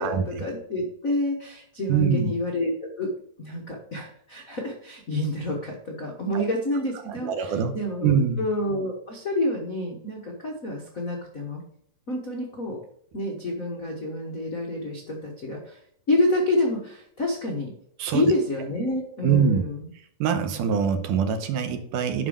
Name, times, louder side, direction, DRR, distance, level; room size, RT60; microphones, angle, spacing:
voice 1, 0.0-3.1 3.4-11.6 12.1-12.8 13.1-15.8 16.1-17.7 18.1-19.9, left 1 dB, 70° left, -1 dB, 0.8 m, -28 dB
voice 2, 1.9-2.3 6.3-6.4 7.1-7.8 8.0-8.4 18.0-18.2 19.2-19.6 20.2-22.3, right 6 dB, 75° right, 7 dB, 2.4 m, -23 dB
9.5 x 5.7 x 5.0 m, 0.66 s
omnidirectional pair, 3.9 m